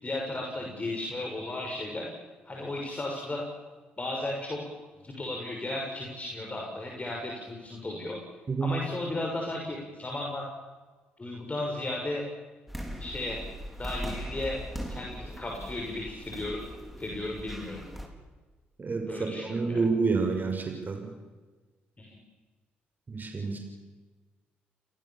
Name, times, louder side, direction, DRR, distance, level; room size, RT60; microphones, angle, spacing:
voice 1, 0.0-2.1 2.5-3.4 4.0-4.6 5.0-8.2 8.6-10.4 11.2-12.2 13.0-13.4 13.8-14.6 14.9-16.6 17.0-17.8 19.1-19.8 22.0-22.2, left 2 dB, 25° left, 0 dB, 6.3 m, -35 dB
sound 1, 12.7-18.1, equal, ahead, 4.8 m, -40 dB
voice 2, 18.8-21.1 23.1-23.6, right 4 dB, 40° right, 4 dB, 5.9 m, -29 dB
29.5 x 19.0 x 7.4 m, 1.3 s
hypercardioid pair, 50°, 5 cm